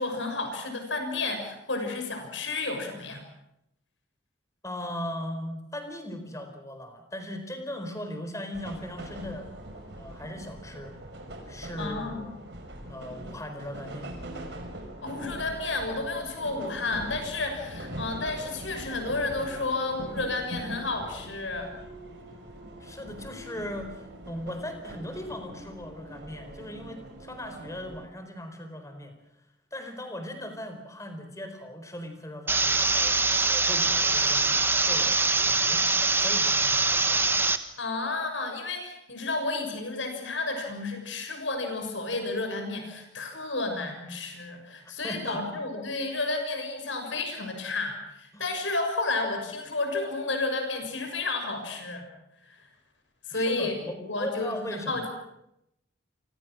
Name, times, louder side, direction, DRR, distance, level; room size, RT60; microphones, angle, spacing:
voice 1, 0.0-3.2 11.8-12.3 15.0-21.8 37.8-52.0 52.4-52.6 53.3-53.8 54.0-55.1, left 3 dB, 75° left, 5 dB, 6.6 m, -31 dB
voice 2, 4.6-9.5 10.0-11.0 11.5-12.3 12.9-14.1 22.8-29.1 29.7-35.9 36.2-37.2 44.8-45.4 48.3-48.5 53.3-55.1, left 1 dB, 15° left, 7 dB, 4.4 m, -38 dB
sound 1, 8.5-28.1, right 1 dB, 60° right, 5.7 m, -42 dB
sound 2, 32.5-37.6, right 3 dB, 10° right, 1.3 m, -23 dB
29.0 x 25.0 x 6.4 m, 0.81 s
head